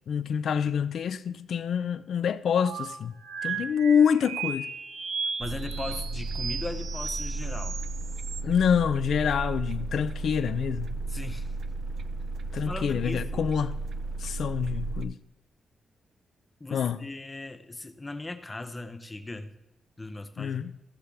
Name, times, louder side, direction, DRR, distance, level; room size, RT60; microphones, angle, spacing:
voice 1, 0.1-3.2 3.4-4.7 8.4-11.0 12.5-13.8 14.2-15.2 16.7-17.0 20.4-20.7, left 7 dB, 60° left, 0.4 m, -26 dB
sound 1, 2.6-8.4, right 6 dB, 70° right, 0.8 m, -36 dB
voice 2, 5.4-7.8 11.1-11.5 12.6-13.5 16.6-19.5 20.0-20.7, left 2 dB, 15° left, 0.6 m, -38 dB
sound 2, 5.4-15.1, right 3 dB, 50° right, 0.3 m, -34 dB
15.0 x 7.0 x 3.4 m
wide cardioid pair, 180°, 0 cm